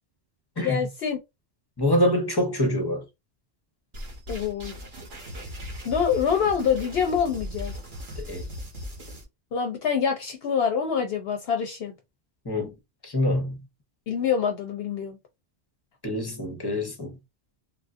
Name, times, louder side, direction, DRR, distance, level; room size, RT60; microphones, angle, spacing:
voice 1, 0.6-1.2 4.3-4.7 5.8-7.7 9.5-11.9 14.1-15.2, left 7 dB, 65° left, 0.8 m, -25 dB
voice 2, 1.8-3.0 8.3-8.5 12.4-12.7 13.0-13.6 16.0-17.1, left 1 dB, 25° left, 0.7 m, -25 dB
sound 1, 3.9-9.2, equal, 65° right, 1.3 m, -38 dB
3.5 x 2.5 x 2.4 m
omnidirectional pair, 1.1 m